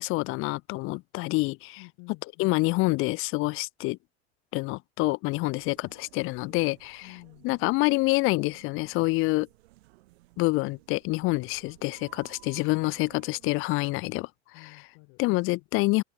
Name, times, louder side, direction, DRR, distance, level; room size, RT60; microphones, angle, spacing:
voice 1, 0.0-1.8 2.4-4.0 4.5-7.1 7.4-9.5 10.4-14.3 15.2-16.0, left 23 dB, 40° left, 0.4 m, -27 dB
voice 2, 1.8-2.5 7.0-7.5 14.5-15.4, left 32 dB, 60° left, 5.1 m, -51 dB
sound 1, 5.5-13.6, right 20 dB, 70° right, 5.2 m, -56 dB
hypercardioid pair, 90°, 33 cm